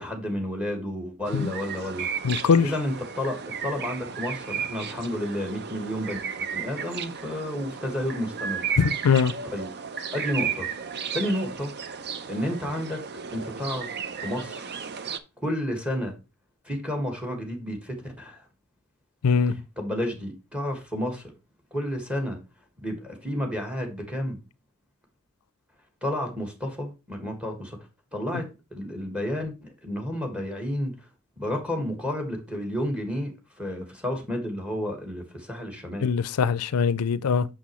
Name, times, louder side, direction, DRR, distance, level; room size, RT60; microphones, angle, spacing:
voice 1, 0.0-2.1 2.6-8.6 9.4-9.7 10.1-10.6 11.1-11.7 12.3-13.0 13.3-13.9 14.2-14.7 15.4-16.1 16.6-18.4 19.5-21.3 21.7-22.4 22.8-24.4 26.0-27.8 28.1-30.9 31.4-36.1, left 1 dB, 5° right, 1.7 m, -31 dB
sound 1, 1.3-15.2, right 6 dB, 50° right, 0.6 m, -34 dB
voice 2, 2.2-2.7 8.8-9.3 19.2-19.5 36.0-37.5, left 6 dB, 80° left, 0.4 m, -22 dB
6.2 x 6.1 x 3.0 m
head